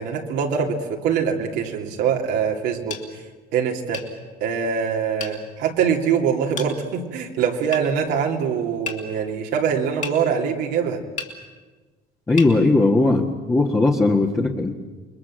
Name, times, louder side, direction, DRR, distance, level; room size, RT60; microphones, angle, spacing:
voice 1, 0.0-3.0 3.5-4.0 4.4-11.0, right 7 dB, 90° right, 1 dB, 3.0 m, -23 dB
sound 1, 2.9-3.1 3.9-4.1 5.2-5.4 6.6-6.7 7.7-7.9 8.9-9.0 10.0-10.2 11.2-11.3 12.4-12.5, left 5 dB, 45° left, 3.5 m, -31 dB
voice 2, 12.3-14.7, left 2 dB, 15° left, -1 dB, 1.7 m, -18 dB
28.5 x 21.5 x 7.6 m, 1.3 s
cardioid pair, 110°, 17 cm